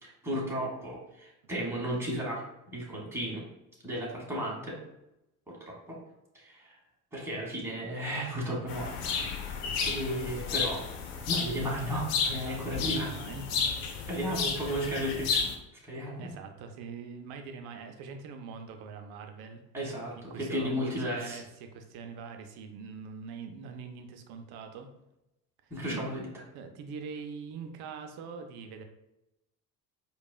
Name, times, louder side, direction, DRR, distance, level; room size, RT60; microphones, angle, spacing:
voice 1, 0.0-2.4 2.7-3.4 3.8-4.8 5.5-6.0 6.3-6.8 7.1-9.1 9.8-10.8 11.2-13.1 14.1-15.4 15.8-16.3 19.7-21.4 25.7-26.3, equal, 5° right, -5 dB, 1.4 m, -34 dB
sound 1, 8.7-15.5, left 5 dB, 65° left, 0.7 m, -32 dB
voice 2, 12.4-13.7 16.2-19.6 20.2-24.9 25.9-26.3 26.5-28.8, right 5 dB, 50° right, 5 dB, 0.6 m, -43 dB
4.6 x 2.6 x 2.2 m, 0.87 s
figure-of-eight pair, 60°, 49 cm